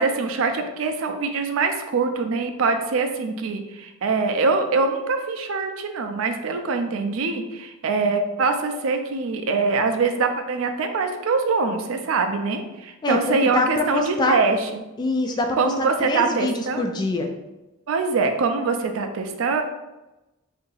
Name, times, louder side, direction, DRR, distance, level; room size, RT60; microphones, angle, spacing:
voice 1, 0.0-14.8 15.6-16.8 17.9-19.6, right 4 dB, 70° right, 6 dB, 0.4 m, -23 dB
voice 2, 13.0-14.4 15.0-17.3, left 2 dB, 20° left, 4 dB, 0.3 m, -24 dB
2.8 x 2.5 x 3.9 m, 1.0 s
head